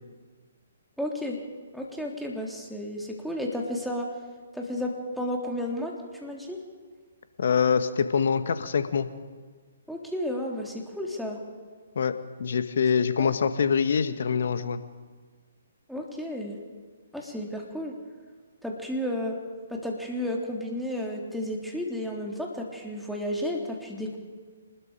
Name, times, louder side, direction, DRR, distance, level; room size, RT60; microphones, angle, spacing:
voice 1, 1.0-1.4 1.7-4.1 4.5-5.9 6.2-6.6 9.9-11.4 13.2-13.3 15.9-16.6 17.1-17.9 18.6-19.4 19.7-24.2, left 1 dB, ahead, -2 dB, 3.4 m, -32 dB
voice 2, 7.4-9.1 11.9-12.1 12.4-14.8, left 6 dB, 60° left, 10 dB, 1.6 m, -24 dB
26.5 x 20.5 x 5.1 m, 1.5 s
figure-of-eight pair, 130°, 0 cm